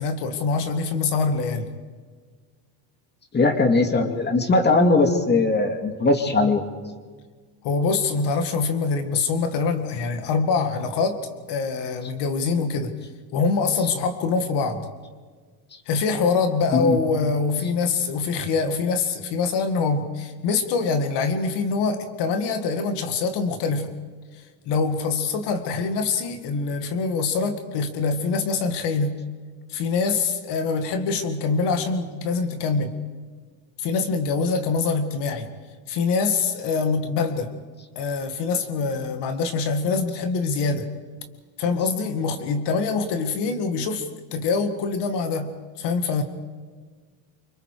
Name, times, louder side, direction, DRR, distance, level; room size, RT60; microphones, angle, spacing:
voice 1, 0.0-1.7 7.6-11.2 11.5-12.9 13.3-14.8 15.9-23.9 24.3-29.2 29.7-32.9 33.8-35.5 35.9-37.5 38.0-40.9 41.6-46.2, left 4 dB, 60° left, 7 dB, 2.2 m, -24 dB
voice 2, 3.3-6.6 16.7-17.0, left 3 dB, 20° left, 6 dB, 2.5 m, -19 dB
28.0 x 25.5 x 5.0 m, 1.5 s
cardioid pair, 150°, 46 cm